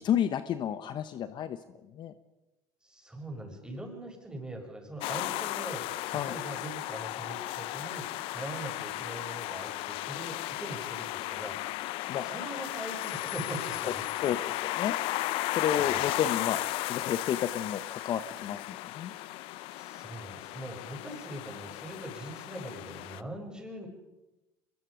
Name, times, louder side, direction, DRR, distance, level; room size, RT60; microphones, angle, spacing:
voice 1, 0.0-1.6 1.9-2.1 6.1-6.4 12.1-12.3 13.8-15.0 15.5-16.6 16.9-19.1, left 9 dB, 50° left, 12 dB, 1.1 m, -31 dB
voice 2, 2.8-11.6 12.2-14.0 15.8-16.0 19.7-23.9, right 1 dB, 10° right, 1 dB, 7.2 m, -42 dB
sound 1, 5.0-23.2, left 17 dB, 65° left, 0.7 m, -35 dB
24.5 x 21.0 x 5.2 m, 1.0 s
hypercardioid pair, 80°, 10 cm